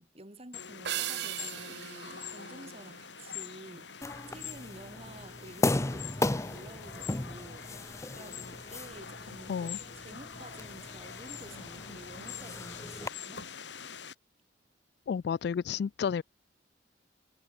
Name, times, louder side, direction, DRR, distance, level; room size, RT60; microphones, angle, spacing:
voice 1, 0.0-13.5, right 1 dB, 35° right, 4.4 m, -51 dB
sound 1, 0.5-14.2, left 7 dB, 80° left, 2.5 m, -45 dB
sound 2, 0.8-3.5, right 12 dB, 65° right, 0.8 m, -39 dB
sound 3, 4.0-13.1, left 2 dB, 15° left, 0.6 m, -36 dB
voice 2, 15.1-16.2, left 7 dB, 65° left, 0.3 m, -31 dB
head